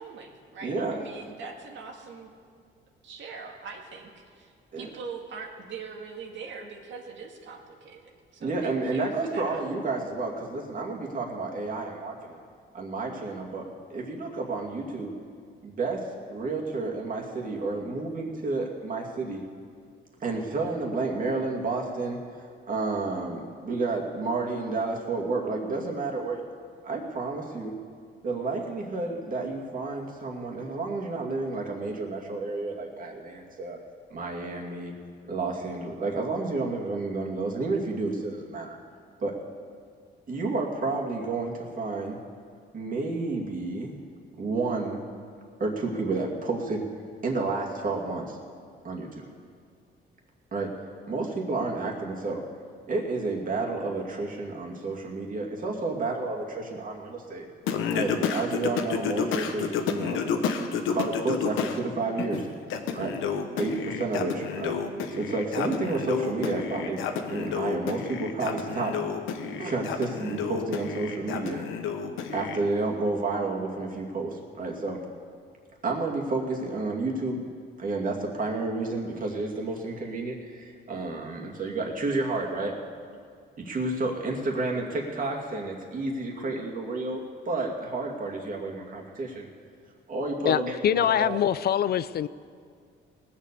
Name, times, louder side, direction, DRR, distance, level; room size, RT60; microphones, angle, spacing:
voice 1, 0.0-2.3 3.0-9.6, right 5 dB, 70° right, 1 dB, 1.9 m, -42 dB
voice 2, 0.6-1.0 4.7-4.9 8.4-12.4 12.7-15.1 15.6-19.4 20.2-26.4 26.8-27.8 28.2-33.8 34.1-34.9 35.3-38.8 39.2-39.4 40.3-42.2 42.7-44.0 44.3-45.1 45.6-46.9 47.2-48.4 48.8-49.3 50.5-50.7 51.1-52.4 52.9-57.5 57.9-60.2 60.9-62.5 62.9-63.2 63.6-64.8 65.1-67.0 67.3-69.0 69.4-71.6 72.3-75.0 75.8-77.4 77.8-82.8 83.6-89.5 90.1-91.4, right 3 dB, 45° right, -1 dB, 2.4 m, -30 dB
Singing, 57.7-61.8 62.2-72.6, left 6 dB, 90° left, 1.1 m, -30 dB
voice 3, 90.4-92.3, left 10 dB, 55° left, 16 dB, 0.4 m, -24 dB
19.0 x 7.4 x 6.9 m, 2.1 s
cardioid pair, 90°, 20 cm